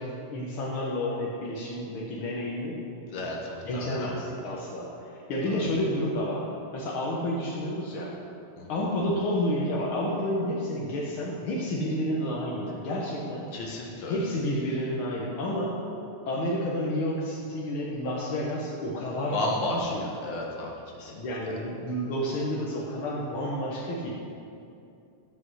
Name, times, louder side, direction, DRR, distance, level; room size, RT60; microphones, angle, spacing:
voice 1, 0.0-2.8 3.6-4.9 5.3-6.4 6.7-8.1 8.7-13.5 14.1-15.7 16.3-20.1 21.1-24.1, left 1 dB, 70° left, -4 dB, 1.2 m, -30 dB
voice 2, 3.1-4.0 5.4-5.6 8.6-8.7 13.5-14.2 19.3-20.7 21.0-21.1, left 2 dB, 50° left, -2 dB, 1.5 m, -33 dB
13.5 x 5.5 x 6.3 m, 2.6 s
omnidirectional pair, 3.8 m